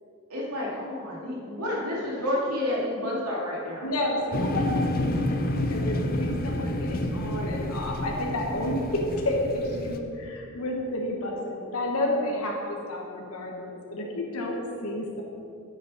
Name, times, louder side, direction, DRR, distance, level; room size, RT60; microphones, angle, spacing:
voice 1, 0.3-3.9, left 1 dB, 85° right, -5 dB, 2.7 m, -30 dB
voice 2, 3.8-15.2, left 1 dB, 80° left, 0 dB, 1.5 m, -31 dB
sound 1, 4.3-10.0, left 1 dB, 40° left, 0.7 m, -29 dB
11.0 x 9.7 x 4.2 m, 2.6 s
head